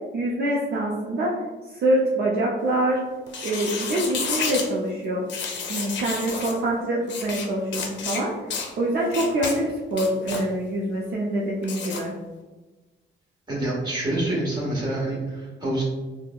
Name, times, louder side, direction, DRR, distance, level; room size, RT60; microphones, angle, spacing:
voice 1, 0.1-1.3 1.7-3.0 3.4-5.2 5.7-8.3 8.8-12.1, right 1 dB, 55° right, -4 dB, 0.5 m, -25 dB
sound 1, 3.3-4.7 5.3-6.5 7.1-7.5 7.7-8.2 8.5-8.7 9.1-9.6 9.9-10.4 11.6-12.0, left 5 dB, 65° left, 0.5 m, -30 dB
voice 2, 13.5-15.8, right 1 dB, 20° right, -5 dB, 1.3 m, -27 dB
3.6 x 2.0 x 2.3 m, 1.2 s
cardioid pair, 90°, 20 cm